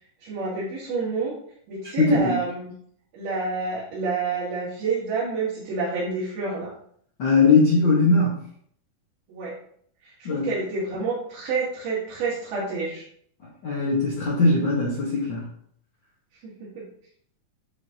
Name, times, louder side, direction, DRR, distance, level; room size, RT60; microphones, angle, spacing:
voice 1, 0.2-1.3 1.7-2.7 3.1-6.7 9.3-9.5 10.0-13.0 16.4-16.8, right 4 dB, 90° right, -10 dB, 3.6 m, -28 dB
voice 2, 2.0-2.3 7.2-8.3 10.2-10.5 13.6-15.5, left 3 dB, 70° left, -6 dB, 1.1 m, -20 dB
9.4 x 3.9 x 2.8 m, 0.64 s
omnidirectional pair, 4.2 m